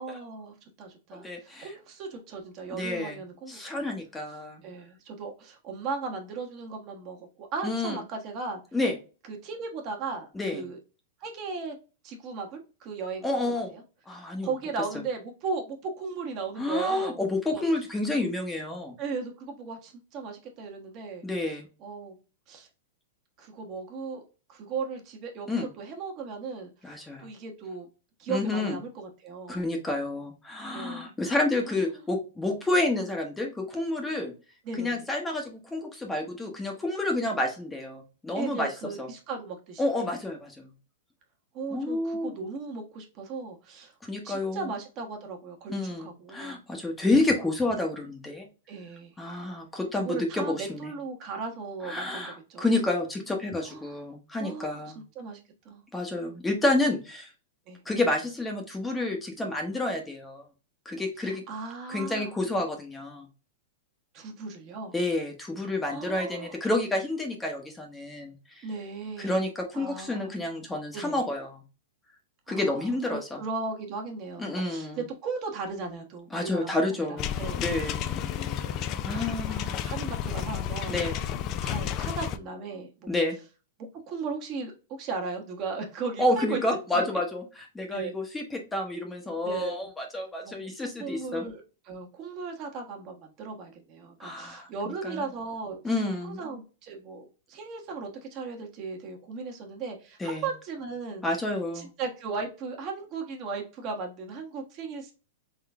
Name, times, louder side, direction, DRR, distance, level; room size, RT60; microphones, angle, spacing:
voice 1, 0.0-3.9 4.6-8.6 9.3-10.8 11.2-11.8 12.0-13.6 14.4-17.2 17.5-17.6 19.0-21.2 21.8-22.2 22.5-22.7 23.4-24.2 24.5-27.9 28.2-29.6 30.7-31.1 31.7-32.0 34.6-35.0 38.4-40.2 41.5-43.9 44.2-46.6 48.7-49.1 50.0-52.7 53.7-53.9 54.4-54.8 55.1-55.4 55.6-55.8 57.7-57.8 61.2-62.3 64.1-64.9 65.9-66.6 68.6-69.4 69.7-70.4 70.9-71.2 72.5-77.8 79.0-81.0 81.6-83.1 83.9-86.6 86.9-87.0 87.9-88.1 89.4-89.9 90.4-90.7 91.0-95.8 96.2-101.2 101.7-105.1, right 4 dB, 40° right, 2 dB, 1.2 m, -37 dB
voice 2, 1.1-1.7 2.7-4.6 7.6-8.0 8.7-8.9 10.3-10.7 13.2-13.7 14.1-14.5 16.6-18.9 21.2-21.7 25.5-25.7 26.8-27.3 28.3-28.8 29.5-34.3 34.7-38.7 39.0-39.1 39.8-40.7 41.7-42.3 44.0-44.7 45.7-48.5 49.2-50.9 51.8-55.0 55.9-57.3 57.9-60.4 60.8-61.4 61.9-63.3 64.9-68.7 69.2-71.6 72.5-73.4 74.4-75.0 76.3-78.2 78.5-78.7 79.0-79.6 80.9-81.2 83.1-83.3 86.2-91.4 94.2-94.7 95.0-95.3 95.8-96.4 100.2-100.5 101.2-101.9, left 2 dB, 10° left, 2 dB, 0.9 m, -29 dB
sound 1, 77.2-82.4, left 9 dB, 40° left, 0.4 m, -31 dB
3.8 x 3.2 x 3.4 m, 0.33 s
hypercardioid pair, 130°, 0 cm